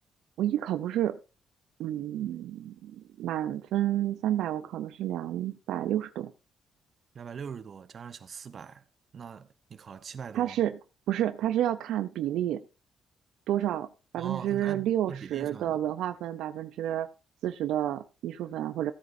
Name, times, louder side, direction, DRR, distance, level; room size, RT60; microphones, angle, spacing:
voice 1, 0.4-1.2 1.8-6.3 10.3-10.7 11.1-12.6 13.5-13.9 14.1-17.1 17.4-18.9, right 12 dB, 85° right, 0.5 m, -30 dB
voice 2, 7.1-8.8 9.1-10.6 14.2-15.8, right 6 dB, 50° right, 0.9 m, -42 dB
15.0 x 9.4 x 2.6 m
cardioid pair, 90°, 0 cm